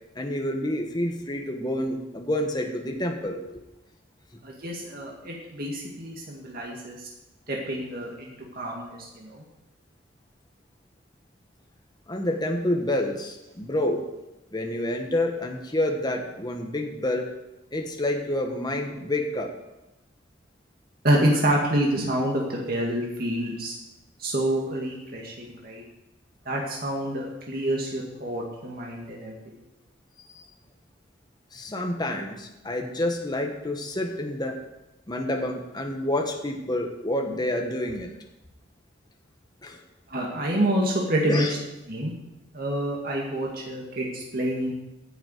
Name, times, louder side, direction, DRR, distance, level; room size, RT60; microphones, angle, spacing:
voice 1, 0.1-3.6 12.1-14.0 14.5-17.3 17.7-19.5 31.5-34.6 35.1-38.1 39.6-39.8 41.3-41.5, left 1 dB, 25° left, 2 dB, 1.3 m, -28 dB
voice 2, 4.4-7.0 7.5-9.4 21.0-23.7 24.2-25.8 26.5-29.3 40.1-41.4 41.9-42.1 42.5-44.7, right 1 dB, 55° right, -2 dB, 2.1 m, -27 dB
9.7 x 7.1 x 8.2 m, 0.96 s
head